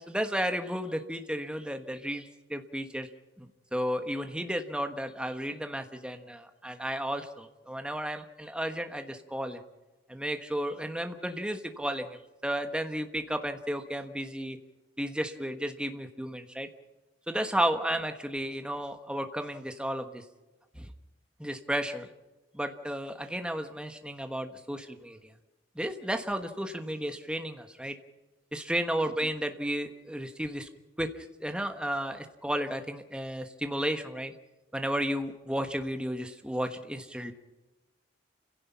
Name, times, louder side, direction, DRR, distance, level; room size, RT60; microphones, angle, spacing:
voice 1, 0.0-3.1 3.4-9.6 10.1-14.6 15.0-16.7 17.3-20.2 20.7-20.9 21.4-22.1 22.5-25.3 25.7-28.0 28.5-30.7 31.0-34.3 34.7-37.3, equal, 5° right, 7 dB, 1.3 m, -33 dB
29.5 x 16.5 x 5.7 m, 1.1 s
head